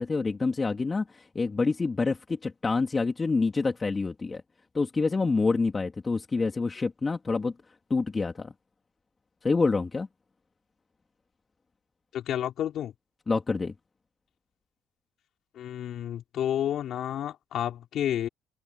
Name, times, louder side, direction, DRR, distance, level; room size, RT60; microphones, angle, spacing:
voice 1, 0.0-4.4 4.7-7.5 7.9-8.5 9.4-10.1 13.3-13.7, left 4 dB, 25° left, 3.3 m, -27 dB
voice 2, 12.1-12.9 15.6-18.3, left 11 dB, 60° left, 5.6 m, -30 dB
open air
supercardioid pair, 90°, 0 cm